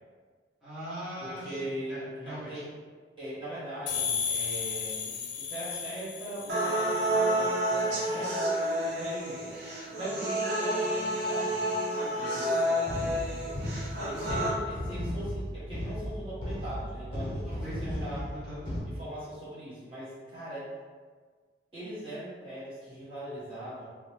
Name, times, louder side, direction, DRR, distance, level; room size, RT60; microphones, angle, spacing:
voice 1, 0.6-2.6 17.5-18.8, equal, ahead, -13 dB, 0.8 m, -41 dB
voice 2, 1.2-2.7 3.2-8.4 8.8-9.6 10.0-11.8 12.1-13.4 14.1-18.3 18.8-20.7 21.7-23.9, right 1 dB, 30° right, -11 dB, 0.9 m, -40 dB
sound 1, 3.9-7.4, left 6 dB, 85° left, 0.4 m, -34 dB
sound 2, 6.5-14.5, right 1 dB, 65° right, 0.6 m, -29 dB
sound 3, 12.9-18.8, equal, 30° left, 0.5 m, -36 dB
2.6 x 2.1 x 3.0 m, 1.5 s
head